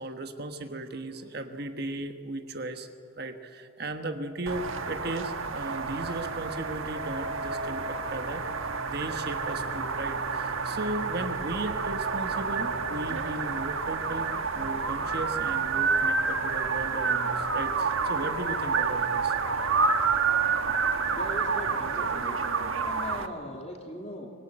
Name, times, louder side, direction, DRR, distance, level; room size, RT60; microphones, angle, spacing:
voice 1, 0.0-2.9 3.2-8.4 8.8-19.3, right 2 dB, 50° right, 7 dB, 1.4 m, -36 dB
sound 1, 4.5-23.3, right 5 dB, 90° right, 1.4 m, -29 dB
voice 2, 21.2-22.4 22.8-24.3, equal, 30° left, 1 dB, 3.0 m, -40 dB
25.0 x 20.0 x 8.9 m, 2.4 s
head